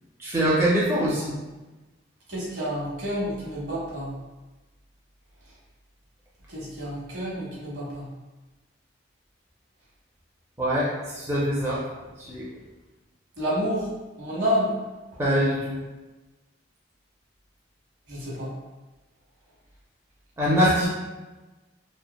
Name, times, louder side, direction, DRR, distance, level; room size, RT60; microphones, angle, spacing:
voice 1, 0.2-1.3 10.6-11.8 12.2-12.5 15.2-15.8 20.4-20.9, equal, 15° right, -7 dB, 0.4 m, -23 dB
voice 2, 2.3-4.1 6.5-8.1 13.4-13.9 14.2-14.7 18.1-18.5, equal, 80° right, -6 dB, 1.1 m, -29 dB
3.2 x 2.1 x 2.2 m, 1.2 s
head